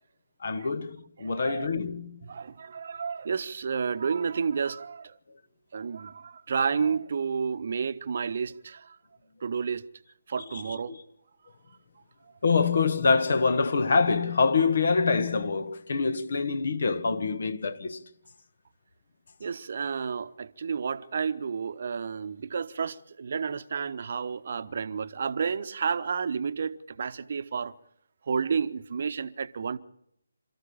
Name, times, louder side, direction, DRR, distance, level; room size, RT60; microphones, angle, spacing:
voice 1, 0.4-2.1 10.5-10.6 10.9-11.0 12.4-18.0, left 4 dB, 50° left, 1.7 m, -25 dB
voice 2, 1.2-1.7 2.2-5.2 5.7-9.0 9.4-9.9 10.3-11.0 19.4-27.7 28.3-29.8, right 6 dB, 45° right, 1.1 m, -31 dB
28.0 x 14.0 x 8.6 m
figure-of-eight pair, 145°, 0 cm